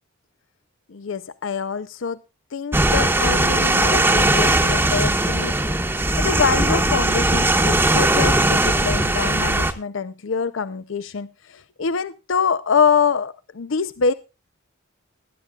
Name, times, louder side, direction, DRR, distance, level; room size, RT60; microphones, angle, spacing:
voice 1, 0.9-2.2 2.5-5.5 6.2-11.3 11.8-14.1, left 6 dB, 65° left, 14 dB, 0.6 m, -24 dB
sound 1, 2.7-9.7, right 1 dB, 10° right, 1.1 m, -19 dB
20.5 x 11.0 x 2.3 m, 0.28 s
head